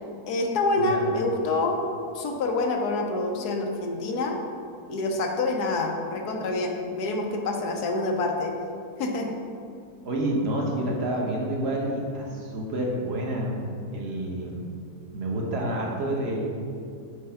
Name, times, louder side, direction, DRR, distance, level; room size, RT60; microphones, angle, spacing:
voice 1, 0.3-1.8 2.1-4.4 4.9-8.5 9.0-9.3, left 2 dB, 75° left, 2 dB, 1.3 m, -26 dB
voice 2, 10.0-13.5 13.9-14.7 15.1-16.5, right 1 dB, 45° right, -1 dB, 1.2 m, -28 dB
6.6 x 4.4 x 5.7 m, 2.4 s
omnidirectional pair, 1.7 m